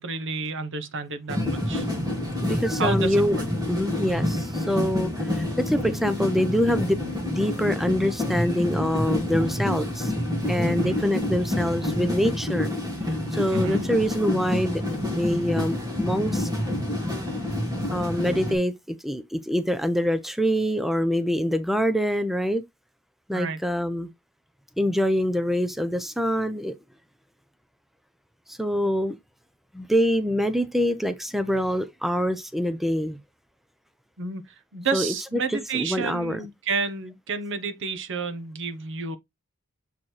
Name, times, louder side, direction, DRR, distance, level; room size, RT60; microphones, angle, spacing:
voice 1, 0.0-1.9 2.8-3.4 10.6-11.0 13.5-13.9 23.3-23.6 34.2-34.4 34.7-39.2, right 4 dB, 60° right, 1.0 m, -30 dB
sound 1, 1.3-18.6, left 1 dB, 20° right, 2.4 m, -28 dB
voice 2, 2.4-3.4 3.7-10.1 10.5-12.7 13.3-14.8 15.1-16.5 17.9-22.6 23.3-24.1 24.8-26.7 28.5-29.2 29.7-33.2 34.9-36.4, equal, ahead, 0.6 m, -25 dB
7.2 x 4.4 x 3.2 m
head